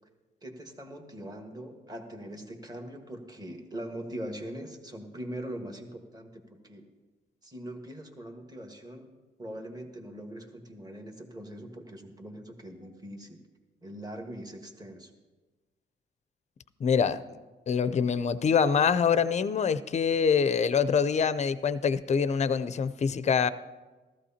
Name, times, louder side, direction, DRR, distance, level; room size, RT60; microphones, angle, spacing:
voice 1, 0.4-6.8 7.4-9.1 9.4-13.4 13.8-15.1, right 1 dB, 20° right, 4 dB, 1.6 m, -42 dB
voice 2, 16.8-23.5, left 6 dB, 35° left, 13 dB, 0.5 m, -25 dB
15.0 x 14.0 x 2.9 m, 1.2 s
cardioid pair, 90°, 20 cm